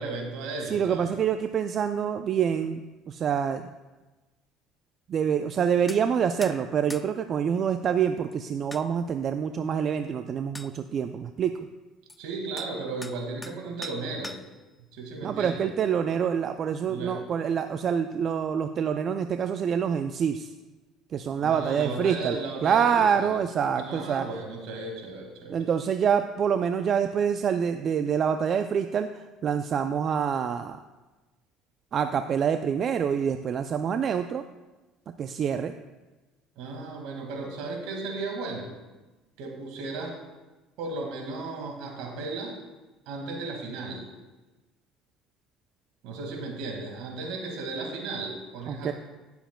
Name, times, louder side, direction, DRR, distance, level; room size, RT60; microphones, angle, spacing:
voice 1, 0.0-1.1 12.2-14.4 14.9-15.7 16.9-17.3 21.4-23.3 23.8-25.6 36.6-38.7 39.4-40.2 40.8-42.6 43.1-44.1 46.0-48.9, right 3 dB, 75° right, 2 dB, 1.9 m, -35 dB
voice 2, 0.6-3.7 5.1-11.7 15.2-20.5 21.1-24.3 25.5-30.8 31.9-34.4 35.1-35.7 48.7-48.9, right 7 dB, 50° right, 8 dB, 0.4 m, -26 dB
sound 1, 5.9-6.0 6.4-6.6 6.9-7.1 8.3-8.4 8.7-8.9 10.0-10.1 10.5-10.7 12.1-12.2 12.6-12.7 13.0-13.6 13.8-14.6, left 2 dB, 10° left, 0.5 m, -41 dB
17.0 x 7.0 x 2.3 m, 1.2 s
supercardioid pair, 80°, 0 cm